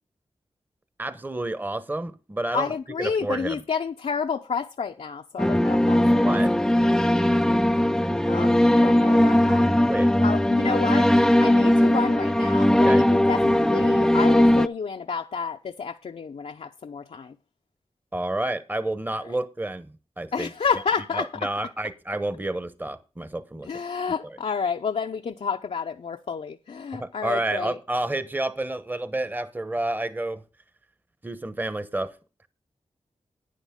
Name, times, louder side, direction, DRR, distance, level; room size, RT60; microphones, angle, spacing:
voice 1, 1.0-3.6 6.2-6.5 9.9-10.1 12.7-13.1 18.1-20.5 21.1-23.7 26.9-30.4 31.2-32.1, right 2 dB, 15° right, 0.9 m, -30 dB
voice 2, 2.5-6.4 8.3-9.9 10.2-11.1 11.4-17.4 20.3-21.5 23.6-27.8, left 6 dB, 70° left, 0.7 m, -30 dB
sound 1, 5.4-14.7, left 1 dB, 5° left, 0.5 m, -19 dB
11.5 x 10.0 x 3.6 m
wide cardioid pair, 110°, 11 cm